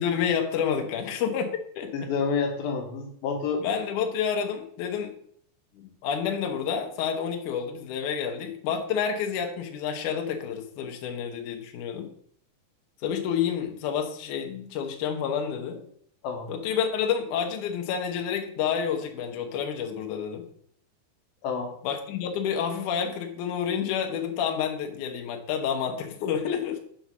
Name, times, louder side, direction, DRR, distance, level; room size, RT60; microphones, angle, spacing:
voice 1, 0.0-1.9 3.6-5.1 5.8-12.1 13.0-15.8 16.5-20.5 21.8-26.8, left 7 dB, 85° left, 3 dB, 1.7 m, -29 dB
voice 2, 1.9-3.6 16.2-16.5 21.4-21.7, left 5 dB, 70° left, 2 dB, 2.7 m, -29 dB
7.8 x 4.1 x 6.0 m, 0.64 s
omnidirectional pair, 5.1 m